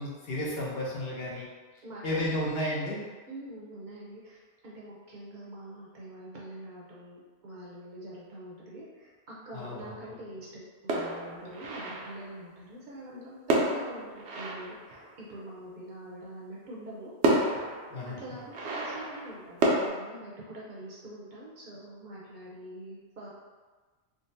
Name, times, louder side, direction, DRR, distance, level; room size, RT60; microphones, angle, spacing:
voice 1, 0.0-1.5 2.0-3.0 9.5-9.9 17.9-18.2, left 1 dB, 65° left, -5 dB, 0.9 m, -32 dB
voice 2, 1.8-2.5 3.3-17.7 18.2-23.3, right 1 dB, 55° right, -6 dB, 0.7 m, -45 dB
sound 1, 10.9-12.4 13.5-15.4 16.6-16.7 17.2-19.9, right 2 dB, 85° right, 0.9 m, -30 dB
3.7 x 2.1 x 2.6 m, 1.4 s
omnidirectional pair, 1.1 m